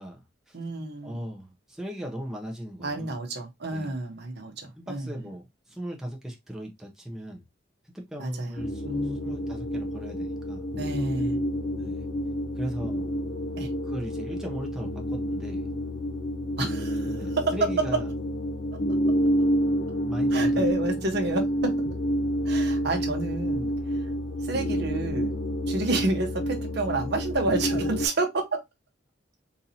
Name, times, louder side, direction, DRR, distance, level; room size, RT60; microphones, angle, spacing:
voice 1, 0.0-0.6 1.0-3.1 3.7-3.9 4.8-7.4 7.9-10.6 11.8-12.1 12.6-13.1 13.8-15.7 17.1-18.1 20.1-21.0, equal, ahead, 0.7 m, -38 dB
voice 2, 0.5-1.2 2.8-5.1 8.2-9.4 10.7-11.4 13.6-13.7 16.6-18.0 20.3-21.8 22.4-24.1 24.4-25.3 25.7-28.6, right 3 dB, 60° right, 0.9 m, -30 dB
sound 1, 8.6-28.1, equal, 65° left, 0.7 m, -28 dB
4.0 x 2.7 x 2.7 m
head